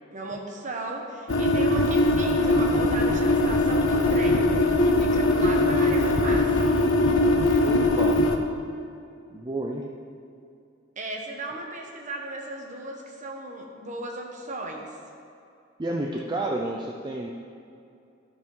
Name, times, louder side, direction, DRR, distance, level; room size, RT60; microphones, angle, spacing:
voice 1, 0.1-4.5 4.8-6.8 11.0-14.9, right 2 dB, 40° right, 1 dB, 1.2 m, -36 dB
sound 1, 1.3-8.4, left 2 dB, 80° left, 0.8 m, -21 dB
voice 2, 7.6-8.2 9.3-9.8 15.8-17.3, right 2 dB, 20° right, 0 dB, 0.5 m, -30 dB
12.0 x 5.7 x 4.6 m, 2.5 s
head